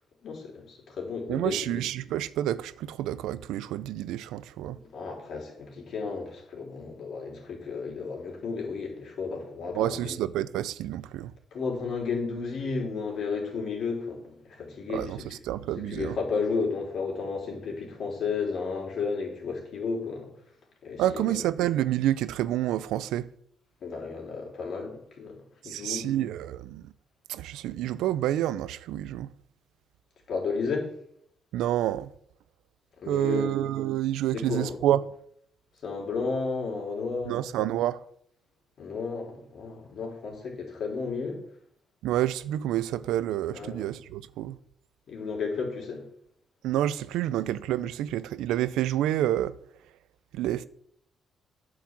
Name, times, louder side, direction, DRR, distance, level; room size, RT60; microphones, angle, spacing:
voice 1, 0.2-1.8 4.6-10.2 11.5-15.4 15.9-20.3 20.8-21.4 23.8-25.4 25.6-26.1 30.3-30.9 33.0-33.5 34.3-34.8 35.8-37.5 38.8-41.4 43.5-43.8 45.1-46.0, left 4 dB, 60° left, 3.2 m, -33 dB
voice 2, 1.3-4.8 9.8-11.3 14.9-15.2 15.5-16.2 21.0-23.3 25.6-26.9 27.3-29.3 31.5-32.1 33.1-35.0 37.3-38.0 42.0-44.6 46.6-49.5 50.3-50.6, right 12 dB, 90° right, 0.4 m, -28 dB
9.1 x 4.8 x 7.3 m
cardioid pair, 90°, 0 cm